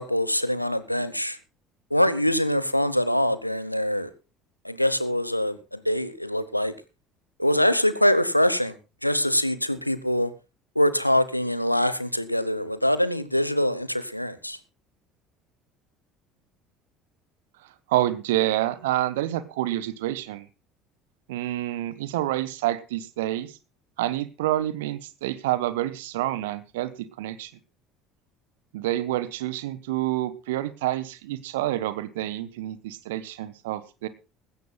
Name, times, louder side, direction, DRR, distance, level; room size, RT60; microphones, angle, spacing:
voice 1, 0.0-1.4 1.9-4.1 4.6-6.7 7.4-8.8 9.0-10.3 10.7-14.6, left 1 dB, 90° left, 1.0 m, -24 dB
voice 2, 17.9-20.5 21.3-23.5 24.0-26.9 27.2-27.5 28.7-34.1, right 14 dB, 65° right, 1.3 m, -28 dB
19.5 x 16.0 x 2.3 m
figure-of-eight pair, 60°, 0 cm